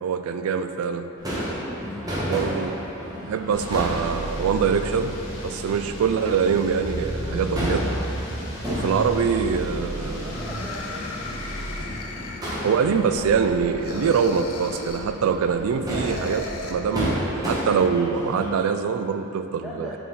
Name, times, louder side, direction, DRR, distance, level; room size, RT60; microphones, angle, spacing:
voice 1, 0.0-1.1 2.3-2.8 3.2-5.2 5.4-7.8 8.7-10.3 12.6-20.0, right 6 dB, 80° right, 9 dB, 0.3 m, -24 dB
Crowd / Fireworks, 1.2-18.5, equal, 15° right, 1.0 m, -32 dB
voice 2, 1.6-3.0 9.5-11.4 19.6-20.0, equal, ahead, -7 dB, 0.4 m, -40 dB
sound 1, 3.5-11.8, equal, 60° left, 1.0 m, -33 dB
sound 2, 10.1-12.9 13.8-15.1 15.9-16.7, left 3 dB, 85° left, 0.6 m, -37 dB
7.1 x 3.8 x 4.3 m, 3.0 s
head